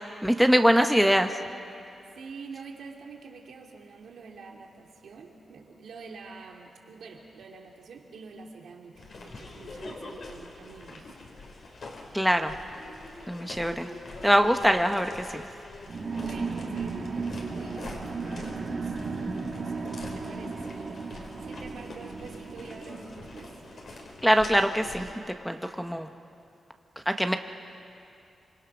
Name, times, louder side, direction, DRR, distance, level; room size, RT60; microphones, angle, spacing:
voice 1, 0.2-1.4 12.1-12.5 13.3-13.9 14.2-15.4 24.2-25.1 25.4-26.1 27.1-27.4, equal, ahead, 5 dB, 1.0 m, -23 dB
voice 2, 2.1-11.2 16.1-23.6, right 4 dB, 80° right, 1 dB, 2.6 m, -47 dB
sound 1, 9.0-25.1, left 2 dB, 60° left, 4.2 m, -44 dB
sound 2, 15.9-24.0, right 4 dB, 50° right, 2.2 m, -35 dB
26.5 x 24.5 x 6.1 m, 2.6 s
cardioid pair, 100°, 0 cm